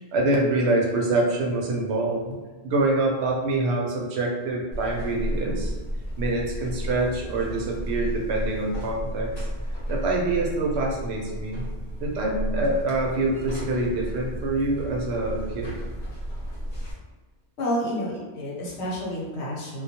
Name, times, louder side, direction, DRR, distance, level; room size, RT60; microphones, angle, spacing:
voice 1, 0.1-2.4 2.6-5.7 6.2-9.5 9.9-11.7 12.0-15.7, right 2 dB, 75° right, -1 dB, 0.8 m, -25 dB
Buzz, 4.7-16.9, equal, 50° left, 0.9 m, -33 dB
voice 2, 17.6-19.8, equal, 80° left, -5 dB, 1.0 m, -29 dB
2.2 x 2.2 x 2.7 m, 1.3 s
omnidirectional pair, 1.1 m